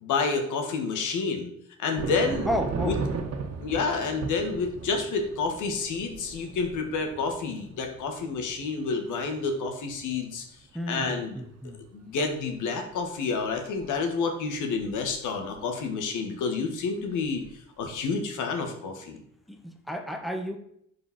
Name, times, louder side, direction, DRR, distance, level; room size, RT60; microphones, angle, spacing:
voice 1, 0.0-1.5 1.8-2.5 2.8-3.0 3.6-10.4 10.9-11.4 11.9-17.4 17.8-19.2, left 4 dB, 80° left, 4 dB, 1.8 m, -29 dB
sound 1, 2.0-10.6 11.1-11.7 12.2-12.3 13.4-14.0 14.8-15.2 17.3-17.5 17.8-18.0, right 4 dB, 55° right, 1.6 m, -37 dB
voice 2, 2.4-3.0 10.7-11.8 19.5-20.6, equal, ahead, 5 dB, 1.2 m, -32 dB
10.5 x 5.1 x 4.3 m, 0.70 s
cardioid pair, 90°, 30 cm